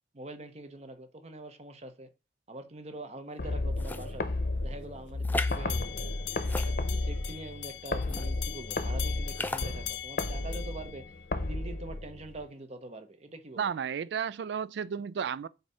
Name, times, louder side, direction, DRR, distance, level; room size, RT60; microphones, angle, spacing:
voice 1, 0.1-2.1 2.5-4.2 4.6-6.1 6.5-13.7, right 2 dB, 35° right, 0.7 m, -44 dB
sound 1, 3.4-12.4, left 2 dB, 55° left, 0.8 m, -33 dB
sound 2, 3.8-4.1 5.2-5.6 6.4-7.2 8.0-8.3 9.3-9.7, left 2 dB, 10° left, 0.4 m, -35 dB
sound 3, 5.4-11.6, left 12 dB, 80° left, 0.5 m, -41 dB
voice 2, 13.6-15.5, right 7 dB, 65° right, 0.3 m, -33 dB
7.9 x 2.7 x 5.4 m
head